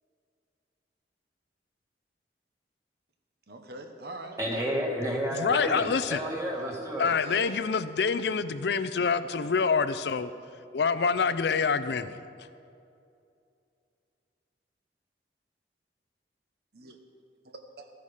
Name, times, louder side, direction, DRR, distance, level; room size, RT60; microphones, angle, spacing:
voice 1, 3.5-4.6 7.2-7.5 16.7-17.0 17.4-17.9, right 2 dB, 60° right, 5 dB, 1.1 m, -43 dB
voice 2, 4.4-7.1, equal, 15° right, -2 dB, 1.9 m, -31 dB
voice 3, 5.3-6.2 7.0-10.3 10.7-12.2, left 5 dB, 70° left, 13 dB, 0.5 m, -26 dB
14.0 x 9.6 x 4.9 m, 2.5 s
head